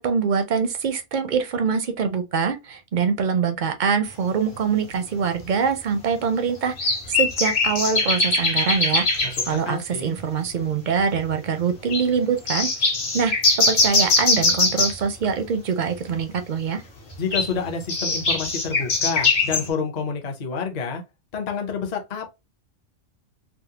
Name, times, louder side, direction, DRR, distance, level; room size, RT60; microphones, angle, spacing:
voice 1, 0.0-16.8, right 6 dB, 55° right, 0.5 m, -24 dB
sound 1, 4.5-4.6 5.4-5.5 6.8-9.5 10.2-10.3 10.5-10.6 11.0-11.3 11.9-12.1 12.5-15.0 17.1-19.7, left 3 dB, 60° left, 1.3 m, -21 dB
voice 2, 9.2-10.2 17.2-21.0 21.3-22.3, left 5 dB, 45° left, 0.7 m, -29 dB
3.6 x 2.1 x 2.7 m
omnidirectional pair, 1.2 m